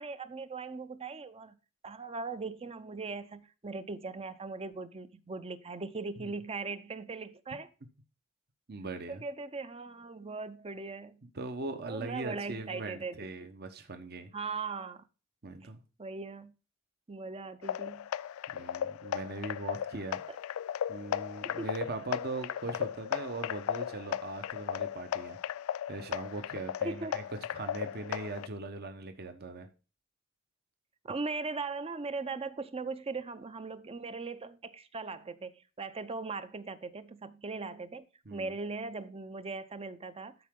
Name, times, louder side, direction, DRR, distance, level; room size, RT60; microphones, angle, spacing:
voice 1, 0.0-1.6 1.8-7.7 9.1-11.2 11.9-13.2 14.3-15.0 16.0-16.5 17.1-18.1 20.3-20.4 21.6-21.7 26.8-27.2 31.0-38.1 38.3-40.4, right 4 dB, 30° right, 0.6 m, -39 dB
voice 2, 8.7-9.2 11.3-14.3 15.4-15.8 18.5-20.2 20.9-25.4 25.9-27.2 27.5-29.7 38.3-38.5, right 3 dB, 50° right, 1.0 m, -40 dB
sound 1, 17.6-28.5, left 9 dB, 75° left, 0.3 m, -36 dB
12.5 x 4.7 x 3.6 m
head